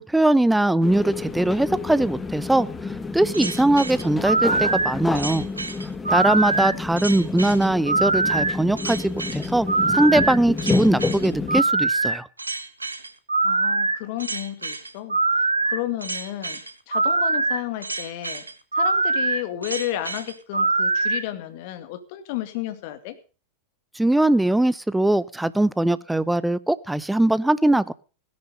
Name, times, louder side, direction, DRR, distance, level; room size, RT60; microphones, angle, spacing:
voice 1, 0.0-5.4 6.1-12.3 24.0-27.9, right 1 dB, 5° right, 18 dB, 0.7 m, -21 dB
sound 1, 0.8-11.6, left 4 dB, 15° left, 1.4 m, -30 dB
sound 2, 3.3-21.2, right 3 dB, 80° right, 1.2 m, -24 dB
voice 2, 13.4-16.6 16.9-18.4 18.7-23.2, left 13 dB, 50° left, 11 dB, 2.2 m, -32 dB
17.5 x 10.5 x 5.3 m, 0.36 s
figure-of-eight pair, 90°, 0 cm